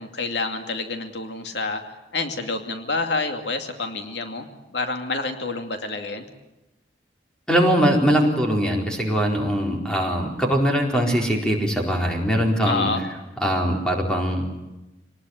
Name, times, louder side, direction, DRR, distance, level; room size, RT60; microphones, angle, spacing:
voice 1, 0.0-1.8 2.1-4.5 4.7-6.2 12.7-13.0, left 3 dB, 75° left, 5 dB, 2.5 m, -28 dB
voice 2, 7.5-12.9 13.4-14.4, equal, 5° left, 0 dB, 4.4 m, -21 dB
26.0 x 19.5 x 9.6 m, 0.98 s
head